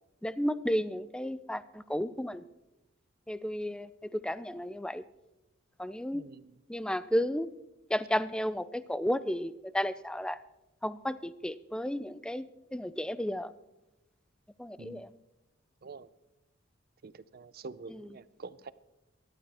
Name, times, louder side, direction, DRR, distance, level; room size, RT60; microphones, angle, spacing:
voice 1, 0.2-2.4 3.3-5.0 5.8-6.2 6.7-7.5 7.9-10.4 10.8-13.5 14.6-15.1, equal, 5° left, 15 dB, 0.4 m, -33 dB
voice 2, 6.1-6.6 14.8-15.0 15.8-16.1 17.0-18.7, right 4 dB, 50° right, 16 dB, 0.5 m, -46 dB
23.5 x 11.5 x 3.4 m, 0.98 s
head